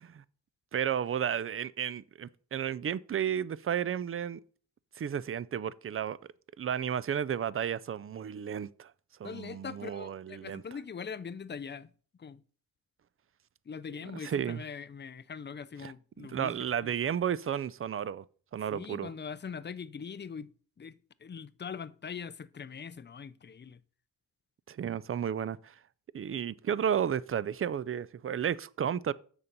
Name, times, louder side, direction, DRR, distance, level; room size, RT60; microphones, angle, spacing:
voice 1, 0.7-4.4 5.0-6.2 6.6-8.9 9.2-10.6 14.2-14.6 15.8-18.2 18.5-19.1 24.7-25.8 26.1-29.1, right 8 dB, 35° right, 0.4 m, -33 dB
voice 2, 9.2-11.9 12.2-12.4 13.7-16.6 16.8-16.9 18.7-20.5 20.8-23.8, left 6 dB, 30° left, 0.5 m, -42 dB
7.3 x 6.8 x 5.3 m
wide cardioid pair, 105°, 38 cm